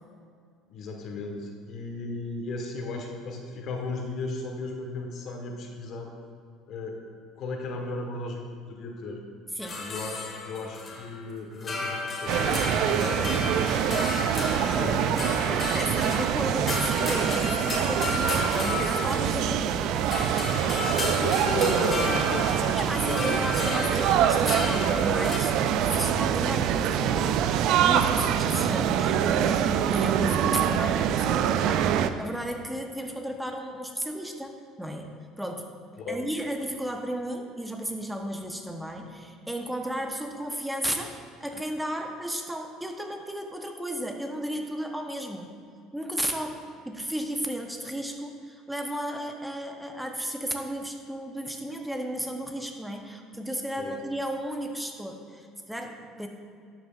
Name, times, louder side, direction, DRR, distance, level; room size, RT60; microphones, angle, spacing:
voice 1, 0.7-6.1 6.7-7.0 7.4-9.2 9.7-14.1 14.5-15.7 16.2-16.3 19.8-19.9 21.0-23.4 28.2-28.3 36.0-36.2 53.8-54.0, left 3 dB, 55° left, 2 dB, 1.5 m, -35 dB
sound 1, 9.6-11.2 11.5-19.8 20.1-25.4, left 2 dB, 35° left, 2.0 m, -33 dB
sound 2, 12.3-32.1, right 9 dB, 60° right, 0.4 m, -25 dB
voice 2, 14.7-15.1 15.7-19.8 22.8-35.7 36.1-45.5 45.9-56.3, equal, 5° right, 3 dB, 1.0 m, -34 dB
11.5 x 8.1 x 2.5 m, 2.3 s
hypercardioid pair, 65°, 0 cm